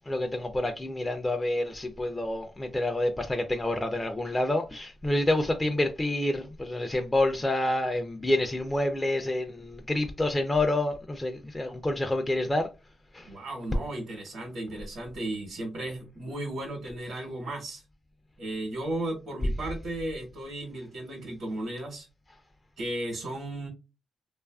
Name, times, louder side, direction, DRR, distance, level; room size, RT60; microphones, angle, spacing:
voice 1, 0.1-12.7 13.1-13.3, left 1 dB, 15° left, 0.3 m, -28 dB
voice 2, 13.2-17.8 18.4-22.1 22.8-23.7, right 1 dB, 75° right, 1.0 m, -35 dB
2.7 x 2.3 x 2.2 m
cardioid pair, 100°, 0 cm